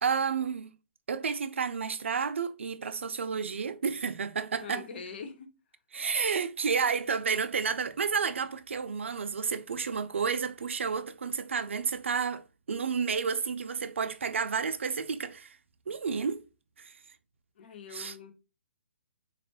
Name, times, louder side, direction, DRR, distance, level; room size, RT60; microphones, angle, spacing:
voice 1, 0.0-0.7 1.1-4.8 5.9-15.6 15.9-16.4 16.8-16.9 17.9-18.2, right 6 dB, 80° right, 0.5 m, -31 dB
voice 2, 4.6-5.5 17.6-18.3, left 5 dB, 55° left, 1.1 m, -43 dB
4.2 x 2.4 x 3.5 m
hypercardioid pair, 140°, 7 cm